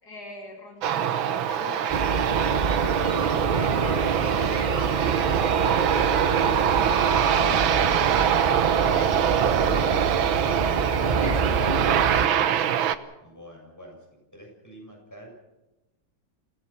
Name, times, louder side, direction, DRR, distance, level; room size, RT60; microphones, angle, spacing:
voice 1, 0.0-2.0 2.5-8.5 8.8-10.1 10.9-12.4, left 3 dB, 55° left, 0 dB, 3.1 m, -41 dB
Aircraft, 0.8-13.0, right 9 dB, 90° right, 1.8 m, -24 dB
sound 1, 1.9-12.3, right 4 dB, 35° right, 0.8 m, -27 dB
voice 2, 13.2-14.1 14.3-15.3, equal, 10° left, 0 dB, 7.7 m, -47 dB
28.5 x 17.5 x 6.0 m, 1.0 s
omnidirectional pair, 2.1 m